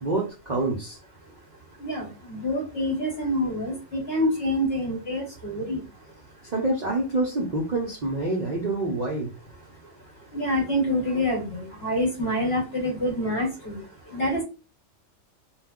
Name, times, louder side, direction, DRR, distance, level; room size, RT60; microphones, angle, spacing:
voice 1, 0.0-1.0 6.5-9.3, right 2 dB, 50° right, -2 dB, 0.5 m, -27 dB
voice 2, 1.8-5.8 10.3-13.8 14.1-14.4, equal, 50° left, 0 dB, 1.3 m, -26 dB
2.4 x 2.2 x 3.5 m, 0.30 s
omnidirectional pair, 1.3 m